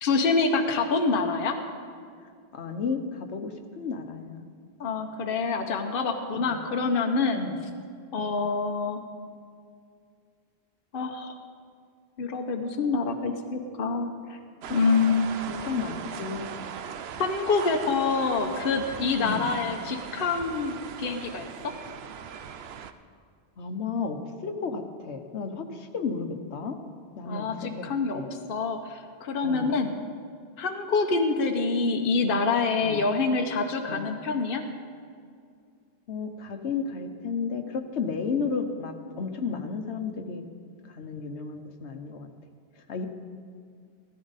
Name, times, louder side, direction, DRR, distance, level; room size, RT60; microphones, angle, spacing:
voice 1, 0.0-1.6 4.8-7.4 8.1-9.0 10.9-11.3 12.2-14.4 14.7-15.3 17.2-21.5 27.3-28.2 28.5-30.0 30.6-34.6, left 4 dB, 60° left, 4 dB, 1.0 m, -26 dB
voice 2, 2.5-4.5 6.4-6.6 7.3-7.6 8.2-8.4 15.5-16.5 19.2-19.5 23.6-26.8 27.2-27.5 27.8-28.3 29.4-29.7 32.8-33.0 33.9-34.1 36.1-40.4 40.9-42.3 42.8-43.1, left 5 dB, 80° left, 6 dB, 1.2 m, -33 dB
sound 1, 14.6-22.9, right 7 dB, 70° right, 0.9 m, -39 dB
15.5 x 13.5 x 4.1 m, 2.2 s
omnidirectional pair, 1.1 m